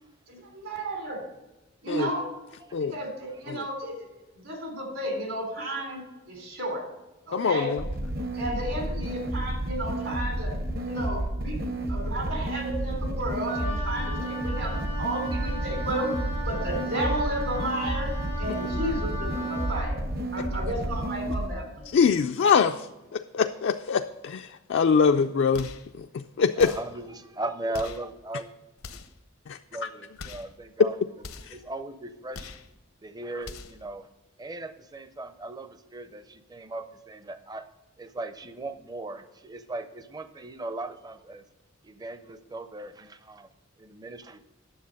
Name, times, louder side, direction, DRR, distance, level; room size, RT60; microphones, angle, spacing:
voice 1, 0.3-1.2 1.8-2.3 2.8-4.1 4.4-6.0 6.3-6.8 7.3-7.7 8.3-10.5 10.8-11.6 11.9-16.1 16.4-18.1 18.4-20.0 20.3-21.8, right 1 dB, 70° right, 1 dB, 3.5 m, -33 dB
voice 2, 7.3-7.8 20.4-20.5 21.9-25.7 25.9-26.7 29.5-29.6 31.5-31.6, left 6 dB, 60° left, 6 dB, 0.3 m, -24 dB
sound 1, 7.8-21.5, right 1 dB, 45° right, 0.8 m, -31 dB
Wind instrument woodwind instrument, 13.5-19.9, equal, 90° right, 3.4 m, -37 dB
sound 2, 25.5-25.9 26.6-27.0 27.7-28.1 28.8-29.2 30.2-30.5 31.2-31.6 32.3-32.7 33.4-33.8, left 4 dB, 80° left, 0.8 m, -42 dB
voice 3, 26.6-28.5 29.7-31.0 31.5-32.5 33.0-34.1 34.4-37.7 38.0-41.4 41.8-43.5 43.8-44.4, right 2 dB, 20° right, 11 dB, 0.5 m, -38 dB
9.6 x 7.1 x 5.2 m, 1.0 s
head